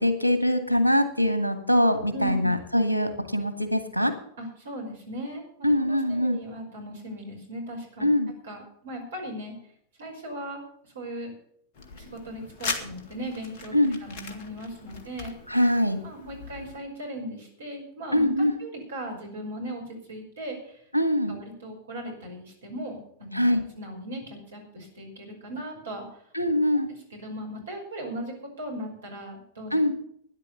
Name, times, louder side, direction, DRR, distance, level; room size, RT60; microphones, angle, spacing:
voice 1, 0.0-4.1 5.6-6.4 8.0-8.3 13.7-14.0 15.5-16.0 18.1-18.5 20.9-21.4 23.3-23.6 26.3-26.9 29.7-29.9, left 1 dB, 85° left, 9 dB, 1.9 m, -23 dB
voice 2, 2.1-2.5 4.4-5.4 5.8-8.1 8.4-9.6 10.0-10.6 10.9-11.3 11.9-15.3 16.0-20.7 21.3-23.4 23.8-26.2 27.1-29.7, equal, 65° right, 2 dB, 5.6 m, -38 dB
sound 1, 11.7-16.8, left 4 dB, 50° left, 2.0 m, -39 dB
12.5 x 10.5 x 6.8 m, 0.65 s
figure-of-eight pair, 90°, 0 cm